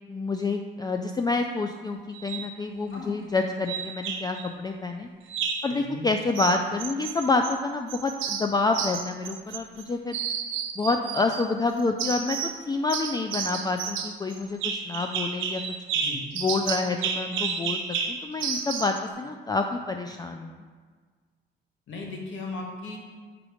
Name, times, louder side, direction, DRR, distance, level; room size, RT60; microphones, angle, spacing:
voice 1, 0.1-5.1 5.6-10.2 10.8-12.4 12.7-15.6 16.3-17.8 18.1-20.6, left 3 dB, 20° left, 5 dB, 0.3 m, -28 dB
sound 1, 2.1-2.5 3.7-4.5 5.3-5.7 6.3-7.6 7.9-9.8 10.1-11.5 12.0-12.6 12.9-19.0, right 7 dB, 85° right, 0.7 m, -31 dB
voice 2, 5.7-6.1 15.9-16.2 21.9-23.0, left 2 dB, 70° left, -1 dB, 1.4 m, -37 dB
5.1 x 4.7 x 5.0 m, 1.5 s
cardioid pair, 90°, 20 cm